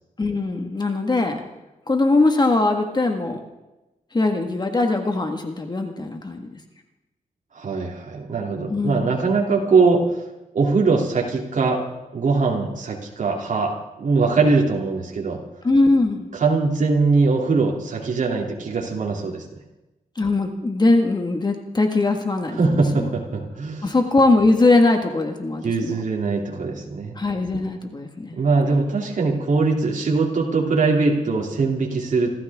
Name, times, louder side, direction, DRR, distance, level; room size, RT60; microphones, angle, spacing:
voice 1, 0.2-1.4 1.9-3.4 4.1-6.5 8.7-9.1 15.6-16.3 20.1-23.1 23.8-26.0 27.1-28.4, left 2 dB, 30° left, 4 dB, 1.7 m, -21 dB
voice 2, 7.5-10.0 10.5-11.8 12.1-13.7 14.0-15.4 16.3-19.4 22.6-23.9 25.6-27.1 28.3-32.3, right 4 dB, 60° right, -2 dB, 2.9 m, -21 dB
28.0 x 13.5 x 3.6 m, 1.0 s
wide cardioid pair, 95°, 14 cm